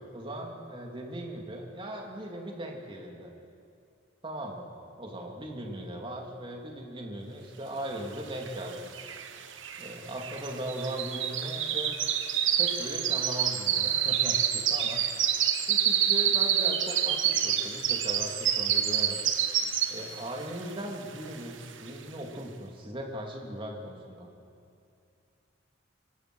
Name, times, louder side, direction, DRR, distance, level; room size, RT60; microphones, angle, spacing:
voice 1, 0.1-3.3 4.2-4.7 5.0-8.9 9.8-12.0 12.6-15.0 15.7-19.2 19.9-24.3, right 1 dB, 25° right, 1 dB, 2.7 m, -38 dB
sound 1, 8.5-8.6 8.7-20.2 20.6-20.9 21.3-21.4, right 9 dB, 75° right, 1.3 m, -27 dB
24.5 x 24.0 x 6.2 m, 2.5 s
head